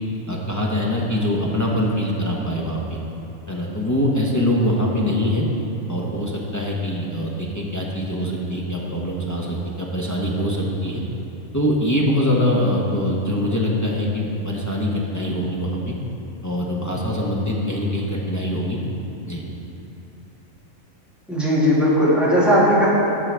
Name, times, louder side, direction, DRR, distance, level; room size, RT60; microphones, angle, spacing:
voice 1, 0.3-3.0 3.5-5.5 5.9-11.0 11.5-16.0 16.4-18.8 19.3-19.4, left 1 dB, 20° left, -3 dB, 0.5 m, -23 dB
voice 2, 21.3-22.9, equal, ahead, -8 dB, 1.7 m, -17 dB
11.0 x 6.2 x 3.4 m, 2.8 s
omnidirectional pair, 1.5 m